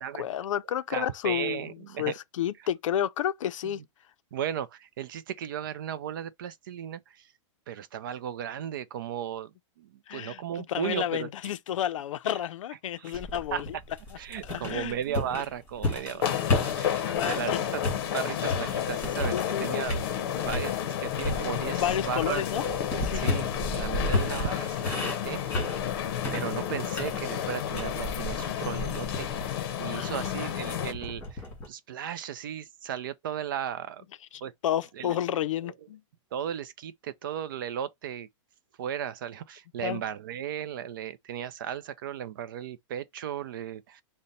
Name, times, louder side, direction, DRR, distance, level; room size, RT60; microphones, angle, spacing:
voice 1, 0.0-3.8 10.1-13.7 14.1-15.0 15.9-16.0 16.4-17.6 19.3-19.9 21.7-22.6 22.9-23.2 29.9-30.3 34.3-36.0 39.8-40.0, left 10 dB, 80° left, 0.5 m, -31 dB
voice 2, 0.9-2.1 4.3-7.3 7.7-9.5 9.8-11.3 13.0-13.2 13.5-13.6 14.2-16.5 16.7-17.8 18.1-25.8 26.3-29.3 29.8-34.0 34.4-34.5 35.0-35.2 35.6-35.7 36.3-38.3 38.8-44.0, right 9 dB, 40° right, 0.4 m, -36 dB
sound 1, 13.1-17.5 17.8-19.6 19.9-20.7 21.2-31.7, left 2 dB, 15° left, 2.0 m, -33 dB
sound 2, 16.2-30.9, left 10 dB, 50° left, 0.7 m, -31 dB
5.0 x 2.1 x 4.1 m
supercardioid pair, 180°, 16 cm